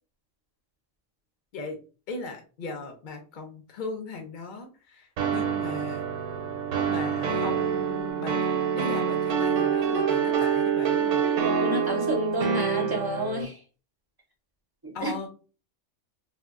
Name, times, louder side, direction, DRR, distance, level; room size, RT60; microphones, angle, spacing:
voice 1, 2.1-6.1 6.9-8.4 8.7-11.2 14.9-15.3, left 3 dB, 55° left, 3 dB, 0.6 m, -38 dB
sound 1, 5.2-13.4, right 7 dB, 80° right, 0.9 m, -26 dB
voice 2, 11.4-13.6 14.8-15.1, right 1 dB, 30° right, 1 dB, 0.4 m, -29 dB
2.2 x 2.2 x 3.5 m, 0.36 s
omnidirectional pair, 1.3 m